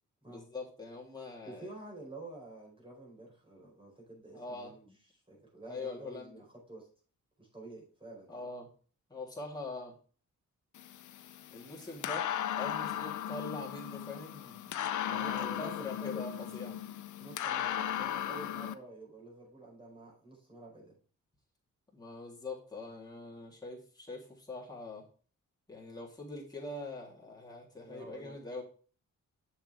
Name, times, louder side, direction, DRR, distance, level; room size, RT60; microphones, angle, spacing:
voice 1, 0.3-1.7 4.3-5.0 5.6-6.4 8.3-8.7 9.1-9.9 11.5-12.3 12.5-16.8 21.9-25.0 25.7-28.6, left 2 dB, 15° left, -4 dB, 3.3 m, -43 dB
voice 2, 1.4-4.9 5.3-6.9 7.4-8.4 15.0-16.5 17.2-21.0 27.8-28.4, right 2 dB, 15° right, -2 dB, 4.7 m, -49 dB
sound 1, 10.7-18.7, left 11 dB, 70° left, 0.7 m, -37 dB
7.3 x 6.9 x 3.5 m, 0.40 s
cardioid pair, 85°, 31 cm